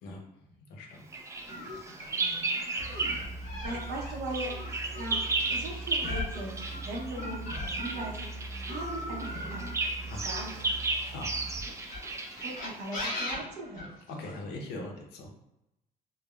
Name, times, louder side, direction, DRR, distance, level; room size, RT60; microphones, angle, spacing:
voice 1, 0.0-1.0 2.9-3.3 10.1-10.4 11.1-11.5 14.1-15.3, left 2 dB, 80° left, 1 dB, 0.6 m, -42 dB
Bird vocalization bird call bird song, 1.1-3.4 3.7-13.2, right 3 dB, 15° right, 0.3 m, -34 dB
sound 1, 1.5-8.3 8.7-11.1 11.8-14.4, left 1 dB, 55° left, 1.0 m, -39 dB
sound 2, 2.8-11.7, right 2 dB, 50° right, 0.8 m, -42 dB
voice 2, 3.6-4.5 5.0-9.8 10.2-10.8 11.4-11.7 12.4-13.9, right 1 dB, 85° right, -2 dB, 0.7 m, -39 dB
3.2 x 2.0 x 2.2 m, 0.89 s
cardioid pair, 110°, 17 cm